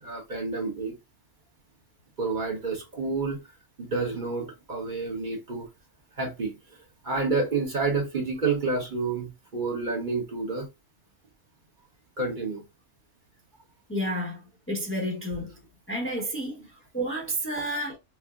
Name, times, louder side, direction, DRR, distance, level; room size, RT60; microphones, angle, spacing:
voice 1, 0.0-1.0 2.2-3.4 3.8-5.7 6.2-6.5 7.0-10.7 12.2-12.6, right 4 dB, 40° right, 1.1 m, -29 dB
voice 2, 13.9-15.6 15.9-18.0, equal, 10° left, 0.8 m, -31 dB
4.4 x 2.0 x 2.3 m
omnidirectional pair, 1.3 m